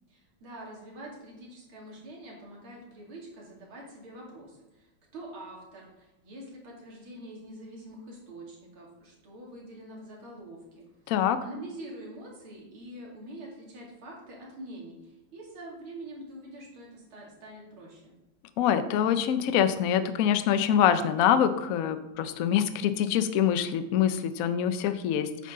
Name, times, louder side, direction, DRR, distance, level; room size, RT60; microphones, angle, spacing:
voice 1, 0.1-10.8 11.2-18.1, right 1 dB, 80° right, -3 dB, 3.4 m, -45 dB
voice 2, 11.1-11.4 18.6-25.5, left 9 dB, 70° left, 11 dB, 0.8 m, -25 dB
9.5 x 7.6 x 3.7 m, 0.99 s
omnidirectional pair, 2.3 m